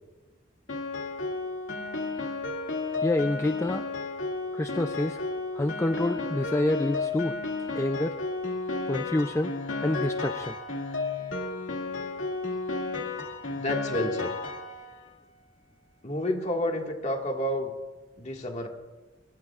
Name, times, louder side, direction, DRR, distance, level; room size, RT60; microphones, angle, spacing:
Piano, 0.7-15.1, left 3 dB, 80° left, 2.2 m, -33 dB
voice 1, 3.0-3.8 4.5-5.2 5.6-7.4 7.7-8.2 8.9-9.5 9.8-10.6, left 1 dB, 15° left, 7 dB, 0.4 m, -27 dB
voice 2, 13.5-14.3 16.0-17.7 18.2-18.7, left 1 dB, 35° left, 2 dB, 1.8 m, -30 dB
23.0 x 23.0 x 2.4 m, 1.2 s
head